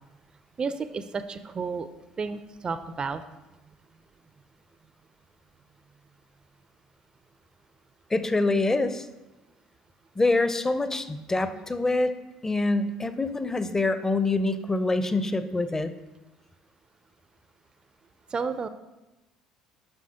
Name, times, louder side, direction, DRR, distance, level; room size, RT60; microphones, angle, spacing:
voice 1, 0.6-1.9 2.2-3.2 18.3-18.7, right 5 dB, 30° right, 11 dB, 0.4 m, -31 dB
voice 2, 8.1-9.1 10.2-12.1 12.4-15.9, left 2 dB, 15° left, 11 dB, 0.6 m, -25 dB
11.5 x 6.0 x 2.9 m, 1.1 s
figure-of-eight pair, 55°, 3 cm